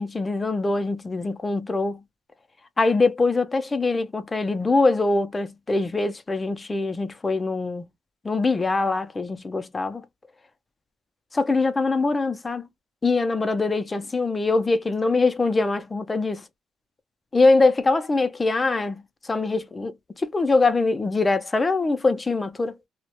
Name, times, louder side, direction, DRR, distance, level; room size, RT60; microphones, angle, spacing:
voice 1, 0.0-2.0 2.8-7.9 8.2-10.0 11.3-12.7 13.0-16.4 17.3-22.8, left 3 dB, 25° left, 0.4 m, -23 dB
2.3 x 2.1 x 2.8 m
cardioid pair, 80°, 0 cm